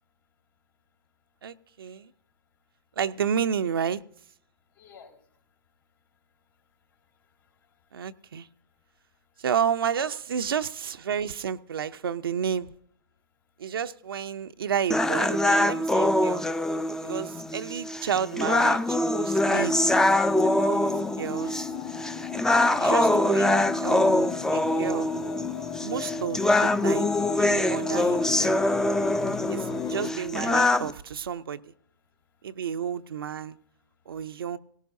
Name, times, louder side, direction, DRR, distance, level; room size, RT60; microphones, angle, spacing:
voice 1, 1.4-2.1 3.0-4.0 7.9-8.5 9.4-12.7 13.6-16.5 17.0-19.7 20.4-20.8 21.2-21.6 22.8-25.1 25.8-27.1 27.4-28.6 29.5-31.7 32.4-33.6 34.1-34.6, right 8 dB, 85° right, 0.6 m, -31 dB
voice 2, 4.7-5.4 6.5-8.1 8.6-9.4 22.6-22.7 29.0-29.5 32.4-32.5 34.1-34.2, left 6 dB, 75° left, 4.4 m, -59 dB
sound 1, 14.9-30.9, left 1 dB, 5° left, 0.4 m, -24 dB
sound 2, 19.3-30.1, left 11 dB, 35° left, 1.7 m, -36 dB
17.5 x 17.5 x 2.7 m
hypercardioid pair, 115°, 12 cm